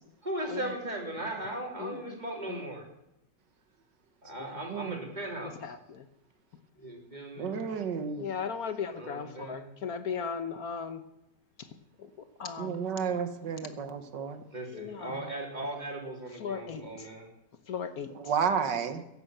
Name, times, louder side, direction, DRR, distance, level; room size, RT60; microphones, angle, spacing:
voice 1, 0.2-2.8 4.2-5.6 6.8-7.5 8.9-9.7 14.5-17.3, right 1 dB, 25° right, 0 dB, 3.6 m, -38 dB
voice 2, 1.8-2.2 2.5-2.6 4.4-4.6 5.6-6.0 7.5-7.6 8.2-11.0 12.0-12.1 12.4-12.8 14.7-15.3 16.4-17.1 17.7-18.1, left 6 dB, 60° left, 10 dB, 1.4 m, -37 dB
voice 3, 4.7-5.0 7.4-8.3 12.6-14.4 18.2-19.0, right 6 dB, 85° right, 9 dB, 2.0 m, -31 dB
15.5 x 11.0 x 7.8 m, 0.85 s
omnidirectional pair, 1.8 m